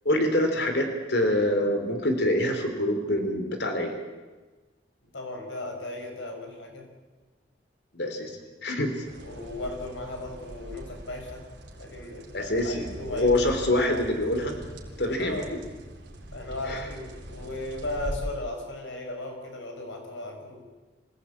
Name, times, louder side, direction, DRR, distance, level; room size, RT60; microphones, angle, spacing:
voice 1, 0.0-4.0 7.9-8.3 8.6-8.9 12.3-14.6 15.0-15.4 16.7-16.8, left 1 dB, 65° left, 5 dB, 3.2 m, -25 dB
voice 2, 5.1-6.9 9.2-11.4 11.8-13.4 15.2-15.5 16.3-20.6, left 2 dB, 90° left, 3 dB, 5.2 m, -36 dB
sound 1, 9.0-18.1, equal, 80° right, 3.9 m, -42 dB
25.5 x 16.5 x 8.6 m, 1.3 s
head